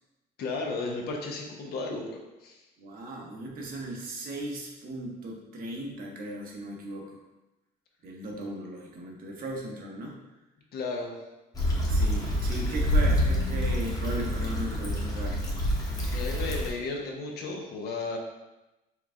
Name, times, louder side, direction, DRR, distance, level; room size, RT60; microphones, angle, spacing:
voice 1, 0.4-2.6 10.7-11.1 16.1-18.2, left 3 dB, 70° left, 0 dB, 0.9 m, -34 dB
voice 2, 2.8-7.2 8.0-10.2 11.9-15.4, right 1 dB, 55° right, -1 dB, 0.9 m, -37 dB
Stream / Traffic noise roadway noise / Trickle dribble, 11.5-16.7, equal, 20° left, 1.0 m, -27 dB
4.6 x 2.3 x 3.6 m, 1.0 s
cardioid pair, 110°, 17 cm